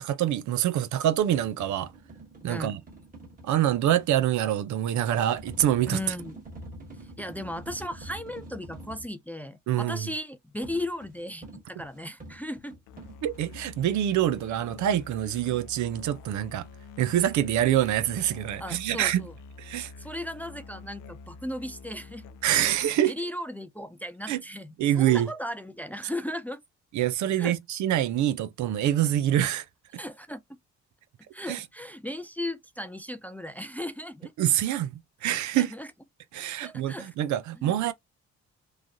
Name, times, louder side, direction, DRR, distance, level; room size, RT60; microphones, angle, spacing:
voice 1, 0.0-1.9 2.4-2.8 3.4-6.0 9.7-10.1 13.2-16.7 17.0-19.3 19.6-19.9 22.4-23.1 24.3-24.4 24.8-25.3 26.9-29.6 31.5-31.6 34.4-34.9 35.2-35.7 36.3-37.9, right 12 dB, 70° right, 0.5 m, -25 dB
sound 1, 1.2-4.1 5.4-9.1 10.6-13.6, right 1 dB, 25° right, 1.6 m, -46 dB
voice 2, 5.9-6.4 7.2-12.8 18.6-19.3 20.0-22.2 23.1-26.6 27.4-27.5 30.0-30.6 31.3-34.3 35.6-35.9 36.6-37.1 37.6-37.7, left 1 dB, 5° left, 0.3 m, -36 dB
Musical instrument, 12.9-23.0, left 4 dB, 85° left, 0.5 m, -47 dB
3.1 x 2.3 x 2.5 m
cardioid pair, 90°, 30 cm